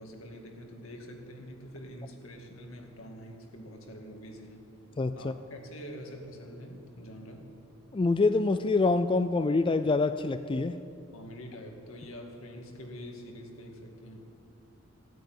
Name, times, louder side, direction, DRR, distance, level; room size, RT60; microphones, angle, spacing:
voice 1, 0.0-4.6 5.1-7.5 11.1-14.2, equal, 80° left, 2 dB, 2.2 m, -45 dB
voice 2, 5.0-5.3 7.9-10.8, left 3 dB, 25° left, 10 dB, 0.4 m, -26 dB
15.5 x 9.2 x 9.4 m, 2.8 s
head